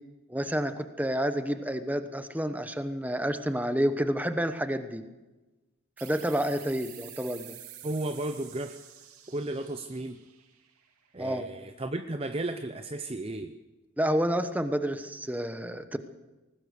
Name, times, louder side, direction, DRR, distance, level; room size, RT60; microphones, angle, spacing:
voice 1, 0.3-5.0 6.0-7.5 11.2-11.5 14.0-16.0, equal, 5° right, 9 dB, 1.0 m, -29 dB
sound 1, 6.0-11.2, right 11 dB, 90° right, 2.6 m, -49 dB
voice 2, 7.8-8.8 9.3-10.2 11.1-13.6, right 2 dB, 25° right, 8 dB, 0.7 m, -34 dB
20.5 x 19.5 x 6.7 m, 1.1 s
head